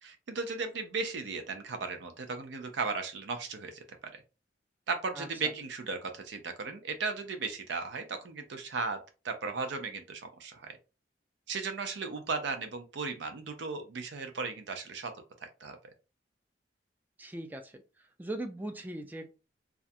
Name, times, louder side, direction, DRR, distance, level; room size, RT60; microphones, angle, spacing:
voice 1, 0.0-4.2 4.9-9.0 9.2-10.8 11.5-15.1 15.4-15.8, right 4 dB, 75° right, 7 dB, 0.5 m, -36 dB
voice 2, 17.2-17.7 18.2-19.3, right 1 dB, 10° right, 5 dB, 0.3 m, -39 dB
2.3 x 2.1 x 2.6 m, 0.31 s
head